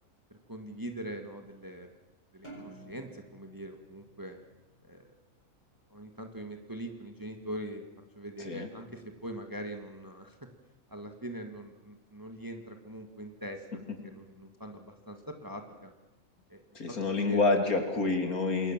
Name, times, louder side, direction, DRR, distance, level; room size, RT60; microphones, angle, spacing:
voice 1, 0.3-1.9 2.3-4.4 4.9-5.1 5.9-7.9 8.2-10.4 10.9-15.9 16.5-16.6 16.9-17.5, right 1 dB, 15° right, 5 dB, 1.8 m, -42 dB
sound 1, 2.4-5.0, right 2 dB, 30° left, 6.7 m, -51 dB
voice 2, 8.4-8.7 16.8-18.7, left 3 dB, 80° left, 5 dB, 3.5 m, -28 dB
27.0 x 22.0 x 7.4 m, 1.1 s
omnidirectional pair, 1.5 m